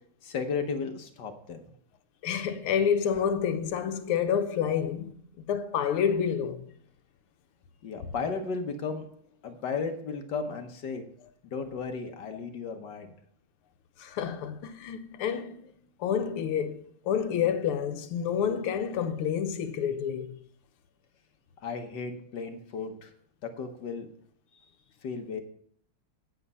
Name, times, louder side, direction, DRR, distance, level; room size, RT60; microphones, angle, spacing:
voice 1, 0.2-1.6 7.8-9.1 9.4-11.0 11.4-13.1 21.6-23.1 23.4-24.1 24.5-24.6 25.0-25.4, left 5 dB, 60° left, 1.5 m, -34 dB
voice 2, 2.2-5.1 5.5-6.6 14.0-15.7 16.0-20.4, left 8 dB, 80° left, 1.7 m, -28 dB
8.9 x 8.5 x 5.5 m
omnidirectional pair, 2.4 m